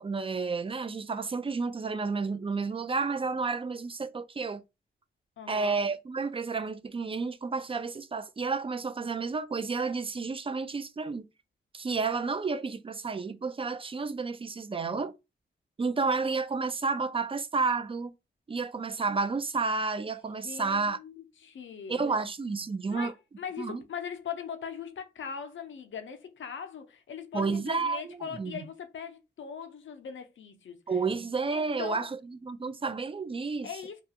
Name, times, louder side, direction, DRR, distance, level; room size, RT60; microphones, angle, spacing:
voice 1, 0.0-4.6 5.5-11.2 11.7-15.1 15.8-18.1 18.5-21.0 21.9-23.1 23.6-23.8 27.3-28.7 30.9-32.2 32.4-33.7, right 4 dB, 25° right, 0.3 m, -31 dB
voice 2, 5.4-5.8 20.4-22.0 22.9-30.8 31.5-32.1 33.6-34.0, left 7 dB, 75° left, 0.6 m, -40 dB
2.3 x 2.3 x 2.8 m
cardioid pair, 60°, 20 cm